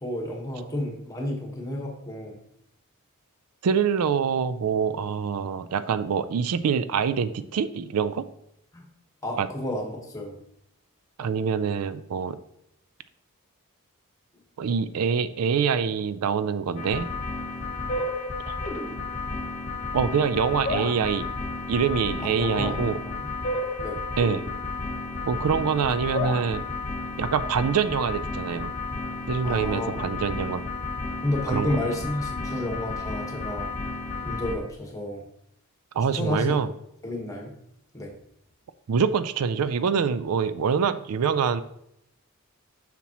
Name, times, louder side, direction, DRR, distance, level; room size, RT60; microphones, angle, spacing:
voice 1, 0.0-2.3 8.7-8.8 9.2-10.4 22.2-23.0 23.2-23.3 23.8-24.0 29.4-30.1 31.2-33.7 34.2-35.2 36.1-36.6 37.0-37.5 37.9-38.1, left 1 dB, 15° left, 1 dB, 1.3 m, -31 dB
voice 2, 3.6-8.2 9.4-9.5 11.2-12.4 14.6-17.1 18.5-18.6 19.9-21.3 21.7-23.0 24.2-24.4 25.3-26.6 27.2-28.7 29.3-30.6 31.5-31.7 35.9-36.7 38.9-41.6, right 6 dB, 85° right, 14 dB, 0.4 m, -25 dB
sound 1, 16.8-34.6, left 3 dB, 35° left, 1.2 m, -32 dB
7.0 x 6.0 x 3.0 m, 0.77 s
head